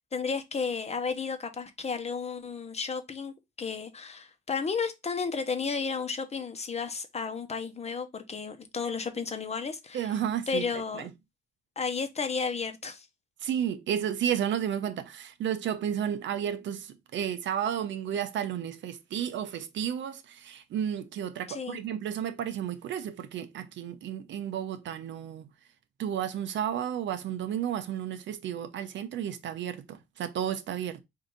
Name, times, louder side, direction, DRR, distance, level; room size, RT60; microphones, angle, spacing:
voice 1, 0.1-10.1 10.5-11.1 11.8-13.1 21.5-21.8, left 5 dB, 35° left, 0.9 m, -33 dB
voice 2, 9.9-10.6 10.9-11.1 13.4-25.5 26.0-31.0, right 9 dB, 70° right, 0.7 m, -32 dB
4.6 x 2.8 x 3.8 m
cardioid pair, 90°, 20 cm